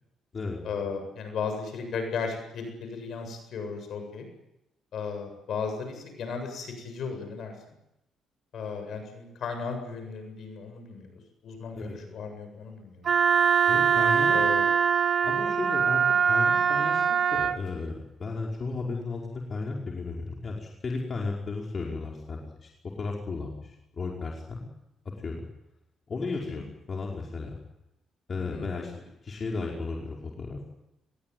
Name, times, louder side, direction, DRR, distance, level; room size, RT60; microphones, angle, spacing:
voice 1, 0.6-4.3 4.9-7.5 8.5-11.1 11.4-13.1 14.3-14.7 21.8-21.9 26.3-26.6 28.5-28.7, left 5 dB, 65° left, 6 dB, 7.7 m, -35 dB
Wind instrument woodwind instrument, 13.0-17.6, right 7 dB, 50° right, 1.3 m, -23 dB
voice 2, 13.7-14.4 15.2-22.7 23.0-24.7 25.2-25.4 26.1-27.6 28.3-28.9 29.2-30.6, left 3 dB, 40° left, -1 dB, 5.2 m, -34 dB
24.5 x 22.0 x 9.5 m, 0.90 s
cardioid pair, 90°, 0 cm